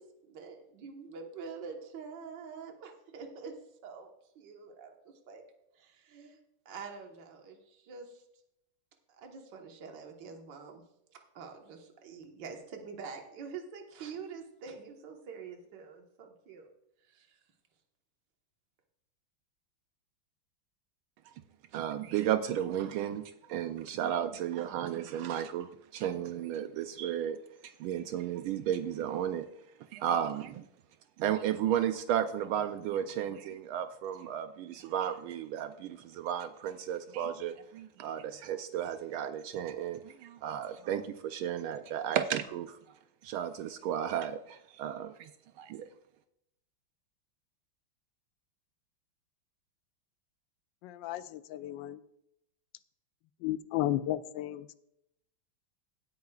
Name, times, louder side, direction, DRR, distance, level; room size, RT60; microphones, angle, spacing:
voice 1, 0.0-3.5 3.8-4.9 5.3-5.4 5.7-6.4 6.7-8.2 9.1-10.8 11.1-16.7 17.0-17.4, right 5 dB, 60° right, 1.9 m, -46 dB
voice 2, 21.7-27.4 27.8-29.5 29.9-30.6 31.2-42.8 43.2-45.3 45.6-45.9, right 10 dB, 80° right, 1.4 m, -33 dB
voice 3, 50.8-52.0 53.4-54.8, left 13 dB, 75° left, 1.1 m, -34 dB
17.0 x 9.3 x 2.4 m
omnidirectional pair, 2.4 m